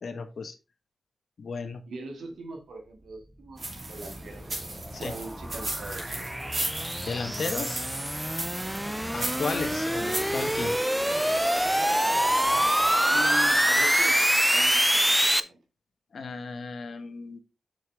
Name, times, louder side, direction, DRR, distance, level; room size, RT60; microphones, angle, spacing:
voice 1, 0.0-0.5 1.4-1.8 4.9-5.2 7.0-7.8 9.1-10.8 16.1-17.4, left 4 dB, 65° left, 1.3 m, -34 dB
voice 2, 1.9-4.4 5.0-6.3 9.9-10.1 13.1-15.6, right 2 dB, 90° right, 2.2 m, -41 dB
sound 1, 3.6-10.8, right 2 dB, 40° right, 3.0 m, -36 dB
sound 2, 4.1-15.4, equal, 5° right, 0.5 m, -25 dB
6.9 x 6.4 x 3.5 m
wide cardioid pair, 105°, 0 cm